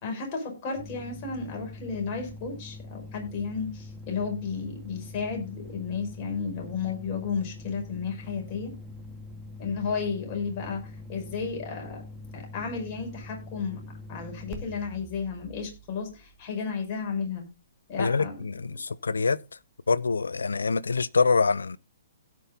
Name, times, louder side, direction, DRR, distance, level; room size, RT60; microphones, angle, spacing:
voice 1, 0.0-8.7 9.6-10.8 11.1-12.0 12.3-13.8 14.1-17.4 17.9-18.3, left 5 dB, 35° left, 5.6 m, -33 dB
sound 1, 0.8-17.1, left 2 dB, 5° right, 2.5 m, -44 dB
voice 2, 18.0-19.4 19.9-21.8, left 4 dB, 80° left, 0.6 m, -25 dB
17.0 x 6.1 x 3.9 m
figure-of-eight pair, 125°, 0 cm